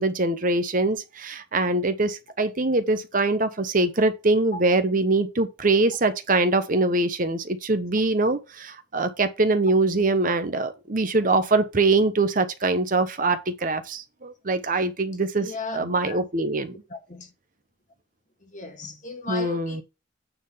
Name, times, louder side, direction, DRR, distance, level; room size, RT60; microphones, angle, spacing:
voice 1, 0.0-15.5 15.7-16.7 19.3-19.8, right 2 dB, 45° right, 0.9 m, -23 dB
voice 2, 15.4-16.2 16.9-17.3 18.4-19.8, left 3 dB, 40° left, 1.5 m, -36 dB
9.0 x 3.8 x 5.6 m
head